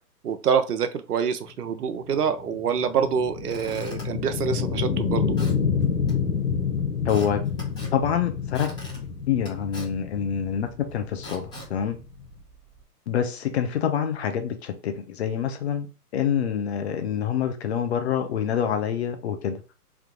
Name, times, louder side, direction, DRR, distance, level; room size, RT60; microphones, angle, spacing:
voice 1, 0.2-5.4, right 7 dB, 70° right, 0.8 m, -26 dB
sound 1, 1.7-12.4, left 6 dB, 90° left, 1.6 m, -28 dB
Squeak / Wood, 3.2-12.8, right 1 dB, 10° left, 1.5 m, -45 dB
voice 2, 7.0-7.4 7.9-8.7 9.3-12.0 13.1-15.9 16.1-19.6, left 8 dB, 40° left, 0.8 m, -26 dB
3.5 x 2.8 x 3.8 m
hypercardioid pair, 145°, 48 cm